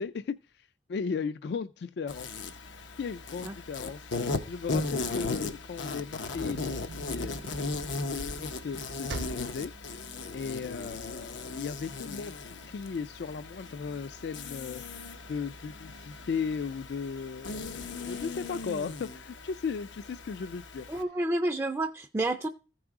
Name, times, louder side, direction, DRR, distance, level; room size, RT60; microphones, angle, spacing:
voice 1, 0.0-2.3 3.0-7.4 8.6-9.7 10.3-15.0 15.3-20.9, left 5 dB, 65° left, 0.3 m, -36 dB
Insect, 2.1-21.0, left 3 dB, 85° left, 0.8 m, -37 dB
sound 1, 6.1-11.3 11.8-11.9 12.2-14.3 14.8-15.3 15.9-16.0 16.3-16.4 16.9-17.5, right 2 dB, 80° right, 0.7 m, -44 dB
voice 2, 20.9-22.5, right 1 dB, 15° right, 0.4 m, -29 dB
14.5 x 4.9 x 3.5 m
head